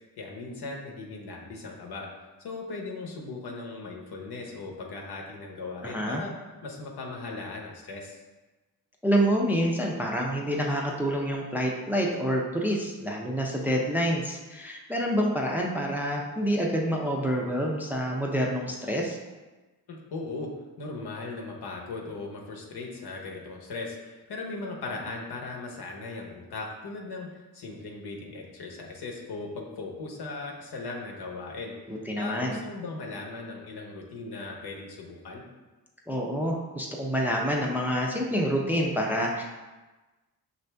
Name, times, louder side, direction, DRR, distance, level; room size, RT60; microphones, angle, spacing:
voice 1, 0.2-2.1 2.4-6.3 6.6-8.2 19.9-20.5 20.8-27.3 27.5-31.7 32.2-35.4, left 3 dB, 85° left, 0 dB, 0.9 m, -38 dB
voice 2, 5.8-6.2 9.0-19.2 31.9-32.6 36.1-39.4, equal, 5° right, -1 dB, 0.4 m, -27 dB
6.2 x 2.6 x 3.3 m, 1.2 s
wide cardioid pair, 160°, 38 cm